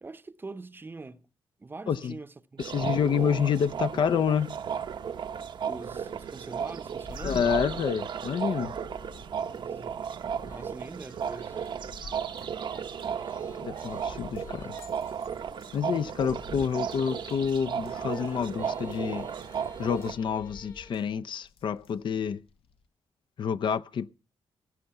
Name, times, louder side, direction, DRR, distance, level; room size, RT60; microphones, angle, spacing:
voice 1, 0.0-1.3 1.6-3.0 5.7-7.5 9.5-10.1 10.4-11.6, right 3 dB, 25° right, 0.7 m, -43 dB
voice 2, 2.6-4.6 7.2-8.8 13.6-14.8 15.7-19.3 19.8-22.4 23.4-24.1, left 7 dB, 60° left, 0.5 m, -28 dB
sound 1, 2.6-20.2, right 7 dB, 55° right, 0.7 m, -35 dB
sound 2, 7.0-22.9, left 4 dB, 75° left, 1.1 m, -49 dB
sound 3, 10.4-21.0, left 4 dB, 35° left, 1.5 m, -55 dB
17.0 x 6.6 x 5.8 m
cardioid pair, 100°, 9 cm